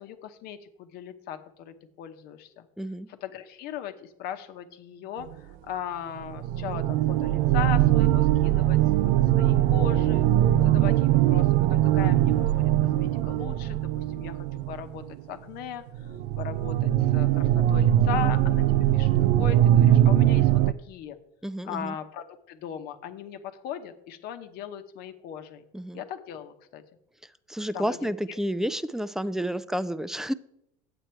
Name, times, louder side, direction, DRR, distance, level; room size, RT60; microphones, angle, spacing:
voice 1, 0.0-2.7 3.1-10.3 10.6-16.1 16.4-19.1 19.4-21.2 21.6-25.7 25.9-26.8 27.7-28.4, left 9 dB, 65° left, 8 dB, 1.0 m, -38 dB
voice 2, 2.8-3.1 21.4-22.0 25.7-26.0 27.5-30.3, equal, 5° right, 16 dB, 0.4 m, -30 dB
sound 1, 5.3-5.4 6.2-15.2 15.9-20.7, right 12 dB, 75° right, 0.5 m, -21 dB
8.8 x 8.0 x 4.5 m, 0.80 s
supercardioid pair, 95°, 18 cm